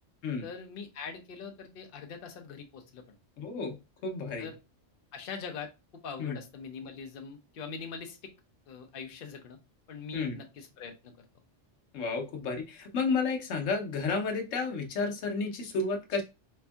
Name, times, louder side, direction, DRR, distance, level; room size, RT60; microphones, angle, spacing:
voice 1, 0.4-3.0 4.4-4.6 5.1-5.7 6.0-8.3 8.7-9.6 9.9-11.1, left 5 dB, 55° left, 4 dB, 0.7 m, -42 dB
voice 2, 3.4-3.7 4.0-4.5 6.2-6.4 10.1-10.4 11.9-16.2, left 4 dB, 80° left, 3 dB, 1.1 m, -31 dB
4.3 x 2.6 x 2.2 m, 0.27 s
omnidirectional pair, 1.3 m